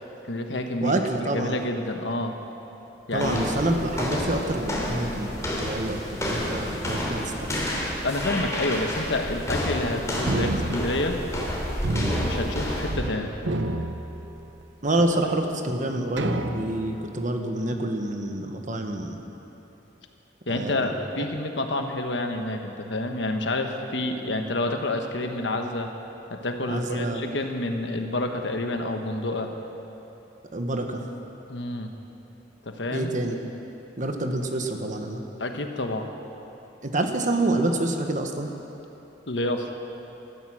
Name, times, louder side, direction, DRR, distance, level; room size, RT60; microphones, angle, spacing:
voice 1, 0.2-0.9 1.2-2.3 3.1-3.5 8.0-11.2 12.2-13.3 20.5-25.9 26.3-29.5 31.5-31.9 32.6-33.1 35.4-36.0 39.3-39.6, left 2 dB, 75° left, 4 dB, 1.4 m, -28 dB
voice 2, 0.8-1.6 3.1-7.6 14.8-19.2 20.5-21.2 26.7-27.3 30.5-31.1 32.9-33.4 34.0-35.2 36.8-38.5, right 1 dB, 45° right, 4 dB, 1.3 m, -27 dB
sound 1, 3.1-13.0, left 1 dB, 20° left, 3.1 m, -30 dB
sound 2, 10.3-11.5 11.8-13.1 13.4-14.7 15.3-15.4 16.2-17.0, right 1 dB, 85° right, 0.9 m, -30 dB
17.0 x 13.5 x 6.4 m, 3.0 s
head